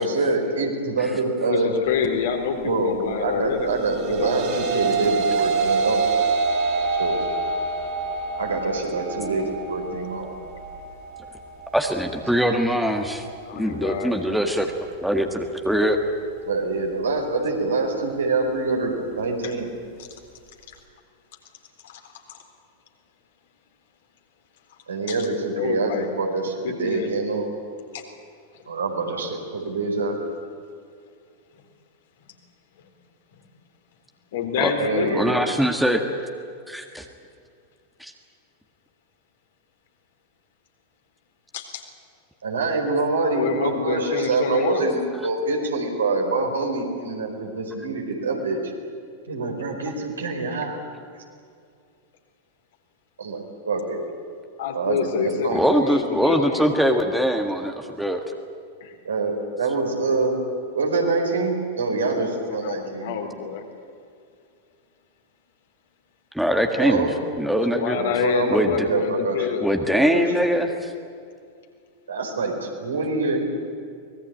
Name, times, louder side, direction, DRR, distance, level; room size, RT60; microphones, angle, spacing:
voice 1, 0.0-1.7 2.6-2.9 3.2-6.1 7.0-7.2 8.4-10.3 16.5-19.7 24.9-27.5 28.7-30.2 34.8-35.4 42.4-48.6 49.3-50.8 53.2-54.0 54.7-55.7 59.0-60.3 60.7-63.1 66.8-67.1 67.9-69.4 70.0-70.2 72.1-73.4, right 3 dB, 70° right, 2 dB, 4.7 m, -25 dB
voice 2, 1.5-3.7 4.0-4.9 13.4-14.1 19.4-19.5 20.0-20.1 20.7-20.8 21.8-22.0 22.3-22.4 25.1-26.1 26.6-27.1 27.9-28.1 28.5-28.6 33.3-33.4 34.3-35.2 41.5-41.8 43.3-44.8 54.6-56.7 58.8-58.9 62.2-63.6 67.5-69.7, left 7 dB, 55° left, 3 dB, 3.8 m, -28 dB
sound 1, 3.7-12.9, right 4 dB, 45° right, 4.8 m, -26 dB
voice 3, 11.7-13.3 13.5-14.7 15.0-16.0 34.6-34.7 35.2-36.0 36.7-37.0 38.0-38.1 55.5-58.2 66.3-67.1 67.3-68.0 68.5-68.9 69.6-70.9, equal, ahead, 4 dB, 1.8 m, -22 dB
24.5 x 20.0 x 8.8 m, 2.3 s
figure-of-eight pair, 90°, 0 cm